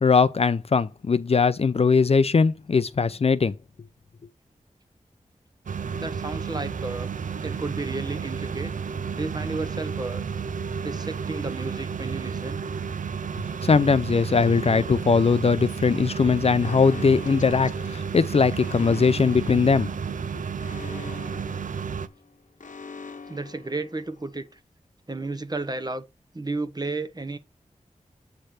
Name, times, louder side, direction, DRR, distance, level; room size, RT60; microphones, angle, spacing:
voice 1, 0.0-3.5 13.6-19.9, left 5 dB, 50° left, 0.5 m, -20 dB
sound 1, 5.7-22.1, right 6 dB, 80° right, 0.5 m, -32 dB
voice 2, 6.0-7.1 7.4-8.7 9.2-10.3 10.8-12.6 23.3-24.6 25.1-26.0 26.3-27.4, right 3 dB, 30° right, 0.9 m, -32 dB
Alarm, 16.6-24.4, left 5 dB, 70° left, 1.0 m, -43 dB
7.8 x 3.2 x 5.8 m
cardioid pair, 45°, 13 cm